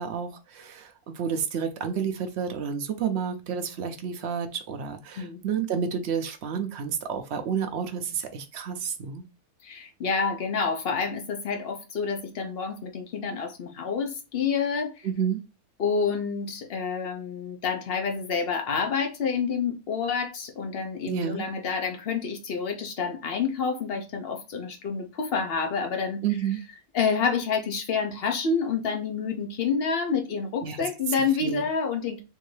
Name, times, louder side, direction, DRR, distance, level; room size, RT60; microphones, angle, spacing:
voice 1, 0.0-9.3 15.0-15.4 21.0-21.5 26.2-26.6 30.6-30.9 31.4-31.6, right 7 dB, 65° right, 0.7 m, -30 dB
voice 2, 9.6-14.9 15.8-26.2 26.9-32.2, left 5 dB, 50° left, 0.8 m, -28 dB
3.7 x 2.6 x 3.1 m
omnidirectional pair, 1.6 m